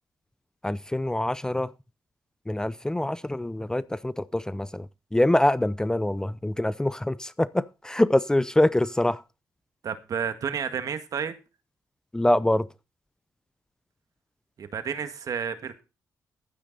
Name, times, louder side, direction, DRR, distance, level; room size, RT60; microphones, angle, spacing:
voice 1, 0.6-1.7 2.5-4.9 5.1-9.2 12.1-12.7, left 1 dB, 10° left, 0.6 m, -24 dB
voice 2, 9.8-11.4 14.6-15.8, right 7 dB, 65° right, 1.8 m, -31 dB
12.0 x 9.4 x 4.0 m
cardioid pair, 80°, 7 cm